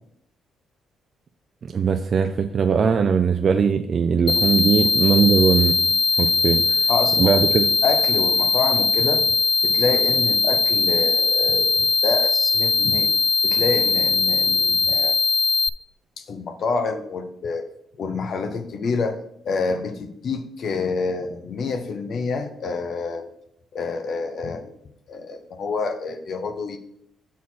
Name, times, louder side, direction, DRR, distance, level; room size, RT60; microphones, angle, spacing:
voice 1, 1.7-5.7 6.2-6.8 7.2-7.7, right 6 dB, 50° right, 6 dB, 0.4 m, -20 dB
sound 1, 4.3-15.7, left 4 dB, 35° left, 0.3 m, -20 dB
voice 2, 6.9-9.3 9.6-13.1 13.4-15.2 16.2-17.6 18.0-19.2 19.4-23.3 23.7-24.7 25.1-26.8, left 4 dB, 60° left, 8 dB, 0.7 m, -27 dB
6.1 x 4.3 x 5.6 m, 0.74 s
cardioid pair, 90°, 0 cm